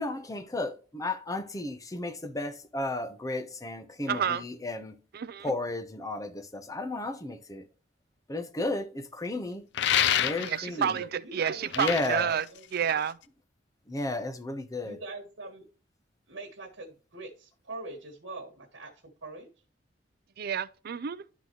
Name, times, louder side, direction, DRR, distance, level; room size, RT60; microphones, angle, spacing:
voice 1, 0.0-5.0 5.4-7.7 8.3-9.6 10.1-11.0 11.8-12.3 13.9-15.0, left 2 dB, 20° left, 0.7 m, -33 dB
voice 2, 4.1-4.4 5.1-5.5 10.4-12.5 12.7-13.2 20.4-21.2, right 8 dB, 55° right, 0.4 m, -30 dB
sound 1, 9.7-10.7 11.5-13.2, left 10 dB, 65° left, 0.5 m, -27 dB
voice 3, 10.7-12.8 14.8-15.7 16.3-19.5, right 3 dB, 85° right, 1.4 m, -43 dB
11.5 x 4.0 x 3.0 m
head